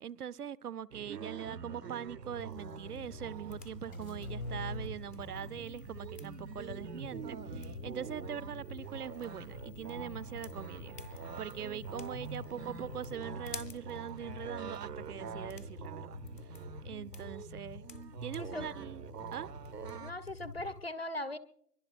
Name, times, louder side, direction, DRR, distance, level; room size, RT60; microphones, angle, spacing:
voice 1, 0.0-16.2 16.8-17.9 18.2-19.1 19.3-19.5, right 9 dB, 70° right, 20 dB, 0.6 m, -42 dB
sound 1, 0.9-20.1, right 6 dB, 85° right, 0.9 m, -45 dB
sound 2, 2.2-20.8, left 4 dB, 80° left, 2.0 m, -49 dB
sound 3, 2.5-13.2, left 2 dB, 60° left, 1.0 m, -50 dB
voice 2, 20.0-21.4, left 1 dB, 40° left, 14 dB, 0.5 m, -39 dB
23.5 x 23.0 x 2.5 m, 0.68 s
hypercardioid pair, 170°, 48 cm